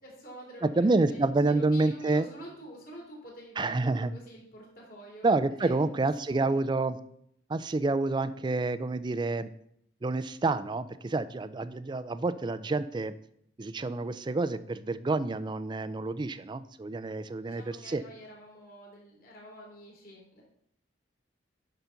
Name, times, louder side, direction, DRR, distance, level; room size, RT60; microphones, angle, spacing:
voice 1, 0.0-5.3 5.6-5.8 6.3-6.6 17.4-20.4, equal, 50° left, -3 dB, 3.1 m, -47 dB
voice 2, 0.6-2.3 3.6-4.1 5.2-7.0 7.5-9.5 10.0-13.1 13.6-18.0, right 3 dB, 25° right, 13 dB, 0.3 m, -28 dB
10.0 x 4.0 x 5.7 m, 0.69 s
head